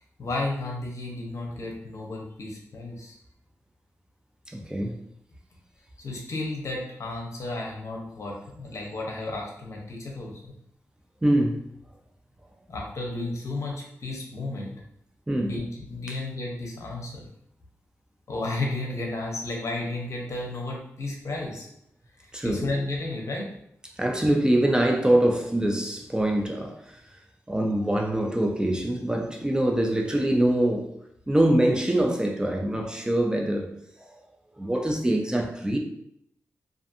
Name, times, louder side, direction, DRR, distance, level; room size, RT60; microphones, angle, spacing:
voice 1, 0.2-3.2 6.0-10.5 12.7-14.7 15.5-17.3 18.3-21.7 22.2-23.5, left 2 dB, 60° left, -1 dB, 0.7 m, -33 dB
voice 2, 4.5-5.0 11.2-11.7 15.3-15.6 16.1-16.2 22.3-22.6 24.0-27.2 27.5-30.9 31.3-33.7 34.0-34.1 34.6-35.8, right 1 dB, 15° right, 1 dB, 0.4 m, -24 dB
2.5 x 2.4 x 2.5 m, 0.74 s
cardioid pair, 85°, 6 cm